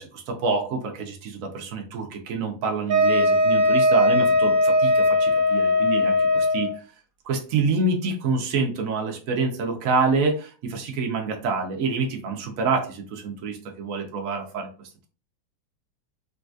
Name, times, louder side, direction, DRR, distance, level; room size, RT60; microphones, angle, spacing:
voice 1, 0.0-6.8 7.2-14.7, right 4 dB, 85° right, 2 dB, 0.7 m, -27 dB
Wind instrument woodwind instrument, 2.9-6.7, left 1 dB, 60° right, 0.9 m, -19 dB
4.0 x 2.3 x 2.6 m, 0.37 s
omnidirectional pair, 2.2 m